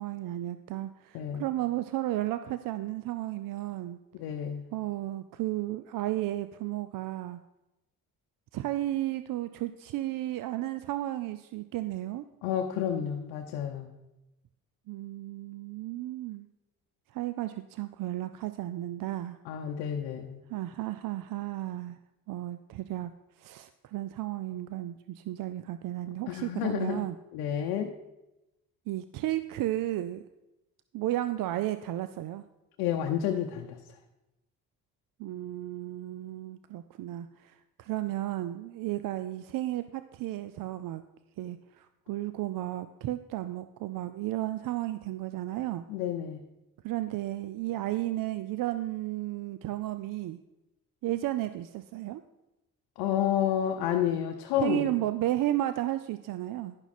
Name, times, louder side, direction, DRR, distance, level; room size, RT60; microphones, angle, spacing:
voice 1, 0.0-4.0 4.7-7.4 8.5-12.2 14.9-16.5 17.1-19.4 20.5-22.0 22.3-23.1 23.4-27.2 28.9-30.2 30.9-32.4 35.2-41.0 41.4-45.8 46.8-50.4 51.0-52.2 54.6-56.8, right 15 dB, 65° right, 12 dB, 0.5 m, -33 dB
voice 2, 1.1-1.5 4.1-4.6 12.4-13.9 19.5-20.4 26.3-27.0 27.3-27.9 32.8-33.8 45.9-46.4 53.0-54.9, left 10 dB, 90° left, 3 dB, 0.7 m, -30 dB
10.5 x 5.8 x 4.2 m, 0.98 s
supercardioid pair, 65°, 36 cm